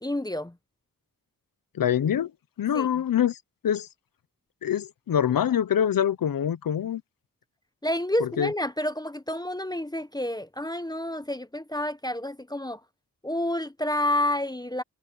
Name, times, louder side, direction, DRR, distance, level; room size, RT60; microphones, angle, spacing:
voice 1, 0.0-0.5 2.7-2.9 7.8-12.8 13.2-14.8, left 1 dB, 10° left, 0.9 m, -29 dB
voice 2, 1.7-2.3 2.6-3.9 4.6-7.0 8.2-8.5, left 9 dB, 90° left, 0.8 m, -25 dB
cardioid pair, 65°, 33 cm